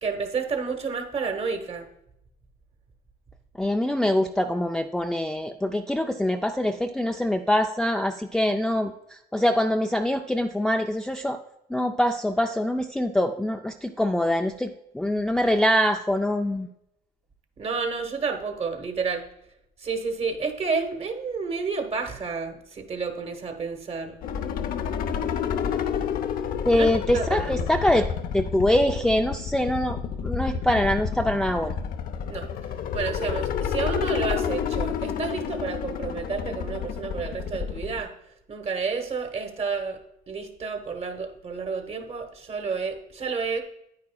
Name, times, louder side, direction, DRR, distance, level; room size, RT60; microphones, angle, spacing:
voice 1, 0.0-1.9 17.6-19.2 19.8-24.2 26.7-27.7 32.3-32.5 32.9-38.1 38.5-40.0 40.3-43.6, right 5 dB, 35° right, 6 dB, 1.3 m, -30 dB
voice 2, 3.6-8.9 9.3-11.4 11.7-16.7 26.6-28.1 28.3-31.7, left 1 dB, 5° left, 4 dB, 0.4 m, -24 dB
sound 1, 24.2-38.0, left 7 dB, 60° left, 0.6 m, -30 dB
9.6 x 9.4 x 2.3 m, 0.80 s
cardioid pair, 110°, 17 cm